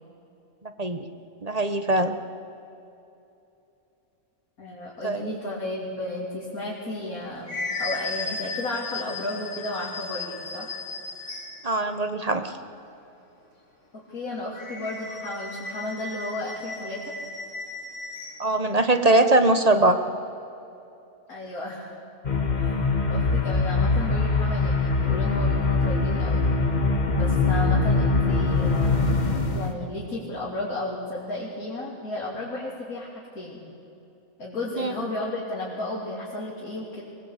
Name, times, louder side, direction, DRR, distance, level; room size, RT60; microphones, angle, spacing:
voice 1, 1.4-2.2 5.0-5.4 11.6-12.5 18.4-20.0 34.8-34.9, right 2 dB, 30° right, 8 dB, 1.1 m, -21 dB
voice 2, 4.6-7.5 7.8-10.8 13.9-17.0 21.3-21.9 22.6-26.5 27.1-29.2 29.5-33.1 33.3-33.6 34.4-37.0, left 2 dB, 85° left, -5 dB, 3.8 m, -33 dB
sound 1, 7.0-11.7 14.5-18.5, left 3 dB, 55° left, 3.6 m, -35 dB
sound 2, 22.2-29.7, left 3 dB, 30° left, 1.6 m, -23 dB
22.5 x 19.5 x 8.4 m, 2.8 s
omnidirectional pair, 1.5 m